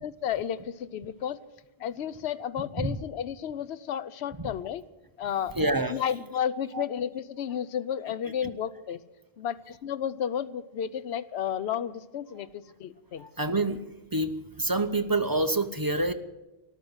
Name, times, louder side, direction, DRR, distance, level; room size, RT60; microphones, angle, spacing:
voice 1, 0.0-1.4 1.8-4.8 5.2-5.6 5.9-9.0 9.4-13.3, left 9 dB, 75° left, 14 dB, 0.9 m, -32 dB
voice 2, 5.6-6.0 6.7-6.8 13.2-16.1, right 2 dB, 25° right, 8 dB, 0.6 m, -27 dB
13.5 x 12.0 x 8.0 m, 1.0 s
omnidirectional pair, 1.1 m